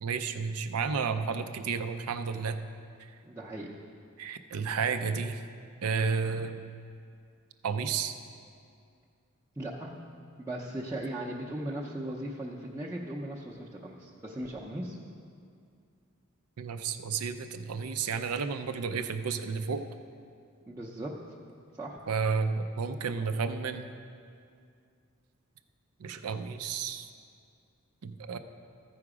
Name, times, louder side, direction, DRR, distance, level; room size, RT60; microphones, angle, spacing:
voice 1, 0.0-2.6 3.0-3.1 4.2-5.4 5.8-6.7 7.6-8.1 16.6-19.8 22.1-23.9 26.0-27.1 28.0-28.4, right 5 dB, 90° right, 9 dB, 0.5 m, -32 dB
voice 2, 3.2-3.7 9.6-9.9 10.4-15.0 20.7-21.1 21.8-22.0, right 1 dB, 10° right, -5 dB, 0.6 m, -38 dB
14.5 x 4.9 x 4.9 m, 2.3 s
head